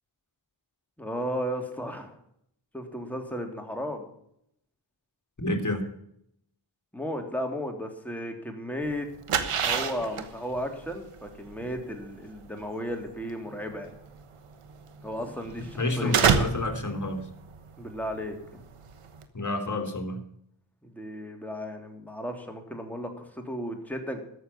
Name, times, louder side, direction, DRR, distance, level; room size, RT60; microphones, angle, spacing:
voice 1, 1.0-2.2 2.7-4.1 6.9-9.1 9.6-13.9 15.0-16.2 17.8-18.6 20.8-24.2, equal, 5° left, 2 dB, 3.2 m, -34 dB
voice 2, 5.4-5.8 15.8-17.2 19.3-20.2, left 2 dB, 35° left, 4 dB, 2.9 m, -29 dB
sound 1, 8.8-19.2, right 6 dB, 90° right, 1.2 m, -30 dB
14.0 x 6.7 x 9.9 m, 0.73 s
cardioid pair, 40°, 50 cm